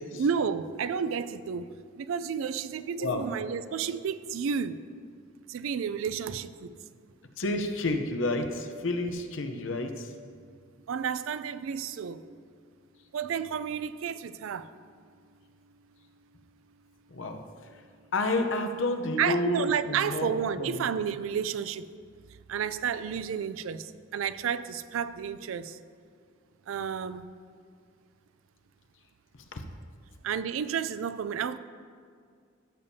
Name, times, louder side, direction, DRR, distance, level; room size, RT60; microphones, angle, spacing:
voice 1, 0.1-4.8 5.5-6.7 10.9-12.5 13.1-14.7 19.2-21.9 22.5-25.8 26.7-27.3 30.2-31.6, right 7 dB, 90° right, 14 dB, 0.4 m, -31 dB
voice 2, 7.4-10.1 17.1-17.4 18.1-20.3 20.6-20.9 29.5-29.6, left 2 dB, 70° left, 6 dB, 0.7 m, -30 dB
13.5 x 7.0 x 2.8 m, 2.2 s
head